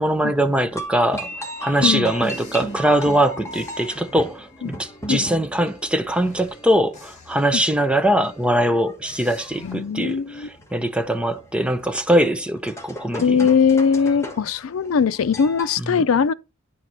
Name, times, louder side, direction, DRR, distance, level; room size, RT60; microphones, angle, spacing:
voice 1, 0.0-13.5 15.8-16.0, right 1 dB, 5° right, 0.6 m, -22 dB
sound 1, 0.7-15.8, equal, 15° left, 1.3 m, -37 dB
voice 2, 1.8-2.1 4.6-4.8 5.1-5.3 7.5-7.6 9.6-10.5 13.2-16.3, left 6 dB, 80° left, 0.4 m, -20 dB
sound 2, 2.2-5.3 5.7-8.7 9.1-9.8, left 2 dB, 35° left, 2.5 m, -48 dB
9.9 x 4.6 x 4.0 m
head